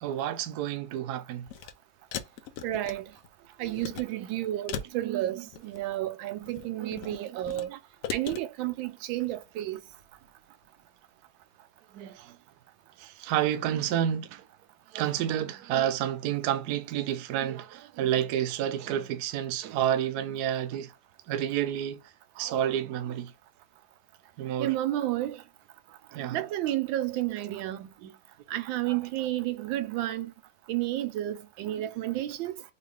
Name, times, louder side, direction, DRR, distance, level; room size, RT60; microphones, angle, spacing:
voice 1, 0.0-1.5 4.1-4.3 4.9-5.4 6.8-7.8 11.9-12.4 13.0-14.4 14.9-20.9 21.3-22.0 22.4-23.3 24.4-24.7 26.1-26.4 28.0-28.1 28.9-29.0 31.7-31.8, right 10 dB, 70° right, 1.0 m, -30 dB
sound 1, 1.4-1.7 2.1-3.3 3.6-4.0 4.7-5.9 6.4-7.7 8.0-8.4, left 8 dB, 80° left, 0.7 m, -38 dB
voice 2, 2.6-3.0 3.6-7.7 8.1-9.8 24.6-25.4 26.3-27.9 28.5-30.3 30.7-32.6, right 14 dB, 85° right, 1.4 m, -31 dB
4.4 x 2.4 x 3.3 m
omnidirectional pair, 2.0 m